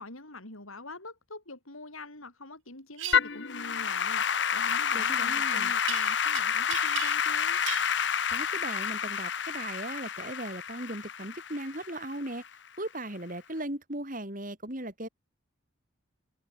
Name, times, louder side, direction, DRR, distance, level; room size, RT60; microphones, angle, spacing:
voice 1, 0.0-7.6, left 2 dB, 85° left, 7.9 m, -45 dB
sound 1, 3.0-3.2 5.9-6.4 6.7-7.4 7.7-7.9, right 13 dB, 70° right, 2.4 m, -37 dB
Applause / Keyboard (musical), 3.1-12.5, left 7 dB, 60° left, 1.0 m, -29 dB
voice 2, 4.9-5.7 8.3-12.4 12.8-15.1, right 1 dB, 40° right, 3.9 m, -38 dB
head